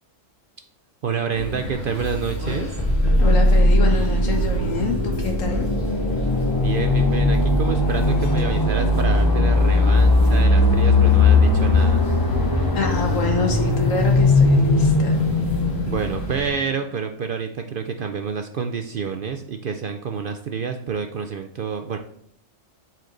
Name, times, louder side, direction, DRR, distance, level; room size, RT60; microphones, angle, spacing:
voice 1, 1.0-2.7 6.6-12.0 15.9-22.0, right 6 dB, 60° right, 6 dB, 0.6 m, -28 dB
sound 1, 1.3-16.5, equal, 55° left, 2.2 m, -31 dB
sound 2, 2.8-16.5, left 2 dB, 25° left, 0.6 m, -18 dB
voice 2, 3.2-5.7 12.7-15.2, left 4 dB, 80° left, 2 dB, 1.6 m, -26 dB
7.7 x 4.5 x 3.8 m, 0.67 s
omnidirectional pair, 1.3 m